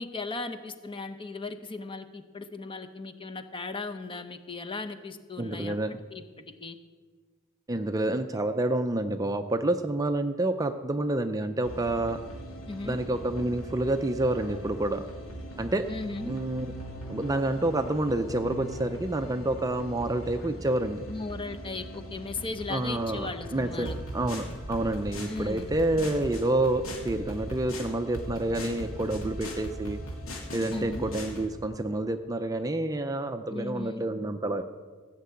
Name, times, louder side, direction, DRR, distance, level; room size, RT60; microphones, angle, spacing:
voice 1, 0.0-5.8 6.1-6.8 12.7-13.0 15.9-16.4 21.1-24.0 25.3-25.8 30.7-31.1 33.5-34.0, left 3 dB, 25° left, 8 dB, 0.8 m, -37 dB
voice 2, 5.4-6.0 7.7-12.2 12.8-15.0 15.6-15.9 16.3-16.7 17.1-21.0 22.7-30.0 30.5-34.6, right 2 dB, 15° right, 8 dB, 0.5 m, -28 dB
sound 1, 11.6-31.5, equal, 85° left, 2.7 m, -40 dB
15.0 x 6.7 x 8.4 m, 1.5 s
head